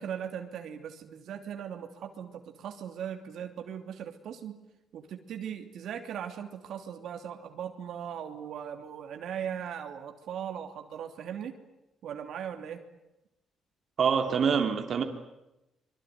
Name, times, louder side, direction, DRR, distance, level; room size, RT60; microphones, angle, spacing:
voice 1, 0.0-4.6 4.9-11.5 12.0-12.8, right 8 dB, 75° right, 5 dB, 3.0 m, -39 dB
voice 2, 14.0-15.0, right 6 dB, 55° right, 5 dB, 2.9 m, -25 dB
25.5 x 23.0 x 9.5 m, 0.92 s
cardioid pair, 90°, 0 cm